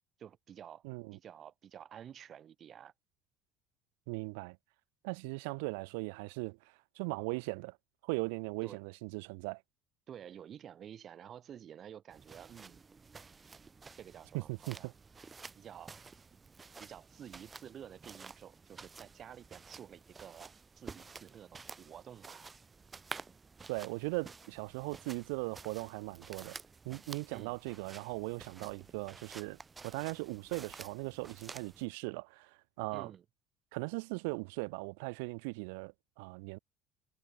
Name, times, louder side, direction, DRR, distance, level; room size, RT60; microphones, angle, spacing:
voice 1, 0.2-0.8 1.1-2.9 8.6-8.8 10.1-12.9 14.0-14.9 15.5-16.1 16.8-22.5 27.3-27.6 32.9-33.2, right 9 dB, 50° right, 1.4 m, -51 dB
voice 2, 0.8-1.2 4.1-4.6 5.0-6.6 7.0-7.8 8.0-9.6 14.5-14.8 23.7-26.5 26.9-32.5 32.8-33.1 33.7-36.6, right 31 dB, 75° right, 0.3 m, -39 dB
sound 1, 12.1-31.9, right 4 dB, 25° right, 1.1 m, -51 dB
hypercardioid pair, 70°, 0 cm